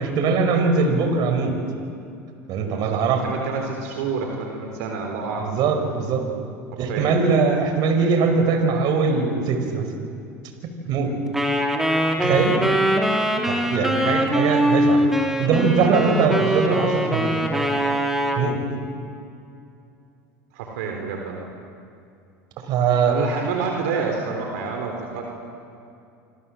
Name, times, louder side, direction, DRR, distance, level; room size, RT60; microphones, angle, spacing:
voice 1, 0.0-1.6 2.5-3.2 5.4-6.3 6.8-9.9 10.6-11.2 12.2-12.5 13.5-15.0 15.4-17.4 18.4-18.7 22.7-23.1, right 5 dB, 55° right, 5 dB, 5.3 m, -21 dB
voice 2, 2.8-5.5 6.7-7.1 12.2-12.8 13.7-13.9 15.7-16.8 20.5-21.4 23.1-25.4, right 5 dB, 75° right, 2 dB, 3.9 m, -29 dB
Wind instrument woodwind instrument, 11.3-18.5, equal, 5° right, 3.2 m, -22 dB
27.5 x 25.5 x 7.7 m, 2.5 s
supercardioid pair, 100°, 9 cm